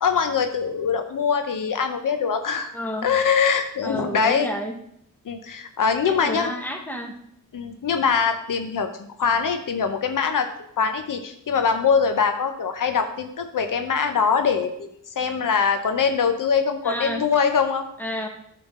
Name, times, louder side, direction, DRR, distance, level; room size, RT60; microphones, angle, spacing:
voice 1, 0.0-2.7 3.0-4.5 5.3-6.5 7.5-8.9 9.2-10.5 10.8-14.9 15.2-17.9, left 6 dB, 75° left, 7 dB, 0.8 m, -23 dB
voice 2, 2.7-3.1 3.8-4.7 6.0-7.1 16.8-17.2 18.0-18.3, equal, 5° left, 3 dB, 1.4 m, -30 dB
9.7 x 5.9 x 3.8 m, 0.72 s
wide cardioid pair, 85°, 32 cm